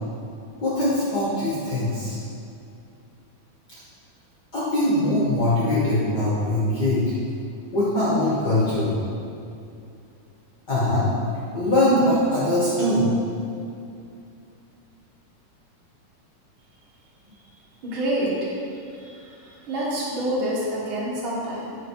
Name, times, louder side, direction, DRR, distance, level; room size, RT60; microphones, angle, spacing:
voice 1, 0.6-2.2 4.5-7.1 7.7-8.9 10.7-11.1 11.5-13.1, left 1 dB, 60° left, -8 dB, 1.1 m, -22 dB
voice 2, 17.8-18.5 18.9-21.8, right 1 dB, 50° right, -6 dB, 1.7 m, -28 dB
8.9 x 5.8 x 4.8 m, 2.5 s
omnidirectional pair, 4.3 m